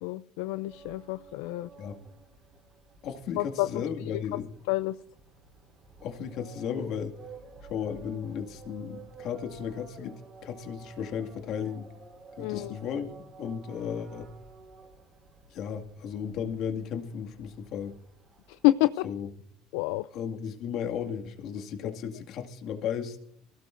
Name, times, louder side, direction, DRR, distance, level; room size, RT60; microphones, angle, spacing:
voice 1, 0.0-1.7 3.4-3.7 4.7-5.0 12.4-12.8 18.5-19.1 19.7-20.1 21.8-21.9, left 18 dB, 80° left, 0.4 m, -28 dB
sound 1, 0.7-19.1, right 3 dB, 40° right, 5.0 m, -51 dB
voice 2, 3.0-4.5 6.0-7.2 7.7-11.9 12.4-14.3 15.5-18.0 19.0-19.3 20.1-23.2, left 7 dB, 60° left, 2.1 m, -35 dB
22.5 x 16.5 x 2.6 m
supercardioid pair, 100°, 0 cm